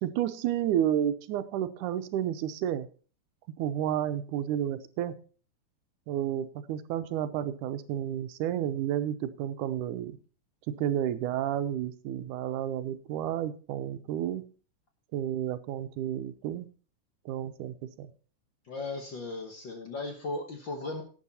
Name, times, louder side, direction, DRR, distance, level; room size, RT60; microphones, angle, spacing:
voice 1, 0.0-2.9 3.6-5.1 6.1-10.1 10.8-14.4 15.1-16.7 17.3-18.1, right 11 dB, 85° right, 11 dB, 2.3 m, -31 dB
voice 2, 18.7-21.0, left 2 dB, 55° left, 4 dB, 1.5 m, -36 dB
12.5 x 8.7 x 4.2 m, 0.39 s
omnidirectional pair, 3.5 m